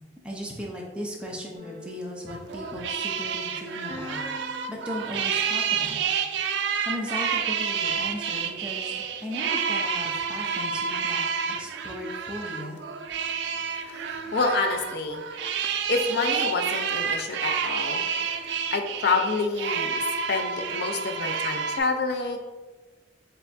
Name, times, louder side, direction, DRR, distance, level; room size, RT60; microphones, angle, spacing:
voice 1, 0.2-4.2 4.5-6.0 6.7-8.9 9.2-11.2 11.5-12.8, left 1 dB, 5° right, -3 dB, 0.6 m, -37 dB
sound 1, 1.5-3.2 3.9-5.8, left 4 dB, 40° right, 1.2 m, -45 dB
sound 2, 2.3-21.8, right 6 dB, 70° right, 0.3 m, -29 dB
voice 2, 13.8-15.2 15.6-18.1 18.7-22.4, left 4 dB, 65° left, 4 dB, 0.5 m, -28 dB
4.3 x 3.4 x 2.6 m, 1.2 s
head